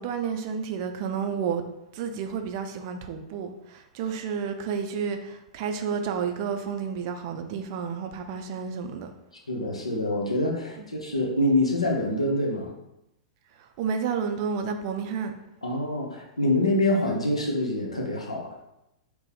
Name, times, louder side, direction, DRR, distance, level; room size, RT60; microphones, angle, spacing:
voice 1, 0.0-1.6 1.9-9.1 13.8-15.3, right 6 dB, 45° right, 6 dB, 0.3 m, -31 dB
voice 2, 9.5-12.7 15.6-18.5, left 1 dB, 80° left, 0 dB, 0.6 m, -25 dB
2.7 x 2.1 x 3.9 m, 0.88 s
figure-of-eight pair, 100°, 3 cm